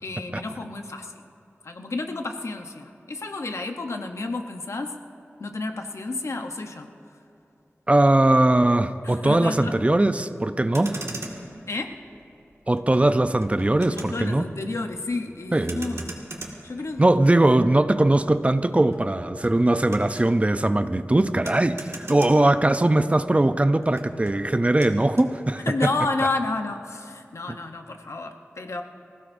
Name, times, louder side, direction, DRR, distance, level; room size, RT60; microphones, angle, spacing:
voice 1, 0.0-1.1 1.6-5.0 5.4-6.9 9.0-9.7 11.7-12.0 14.0-16.0 16.6-17.0 25.6-28.8, left 3 dB, 90° left, 5 dB, 0.9 m, -31 dB
voice 2, 7.9-11.1 12.7-14.5 15.5-16.0 17.0-25.6 27.5-27.6, right 1 dB, 25° right, 10 dB, 0.6 m, -20 dB
Motor vehicle (road), 10.6-23.2 23.4-25.3, right 2 dB, 80° right, 1.9 m, -41 dB
25.5 x 16.5 x 2.7 m, 2.8 s
wide cardioid pair, 65°, 5 cm